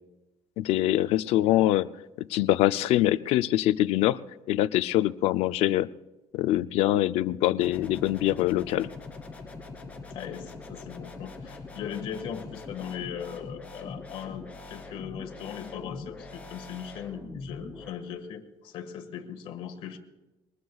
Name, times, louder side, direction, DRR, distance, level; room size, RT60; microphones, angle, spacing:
voice 1, 0.6-1.9 2.2-4.2 4.5-5.9 6.3-8.9, left 14 dB, 80° left, 14 dB, 0.5 m, -24 dB
sound 1, 7.6-17.9, left 3 dB, 15° left, 2.4 m, -43 dB
voice 2, 10.1-20.0, left 8 dB, 65° left, 4 dB, 1.7 m, -39 dB
22.5 x 19.5 x 2.4 m, 1.0 s
cardioid pair, 140°, 10 cm